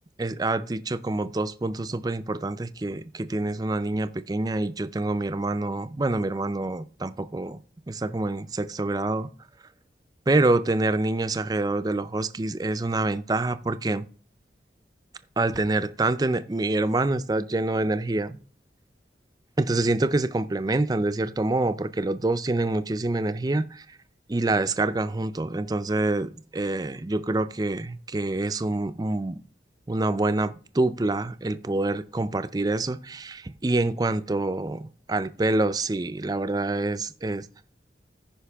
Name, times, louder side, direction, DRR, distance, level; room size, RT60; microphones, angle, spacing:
voice 1, 0.2-7.6 7.9-9.3 10.3-14.1 15.4-18.4 19.6-23.9 24.3-29.4 29.9-37.5, right 2 dB, 20° right, 0.4 m, -26 dB
14.5 x 5.2 x 3.5 m
head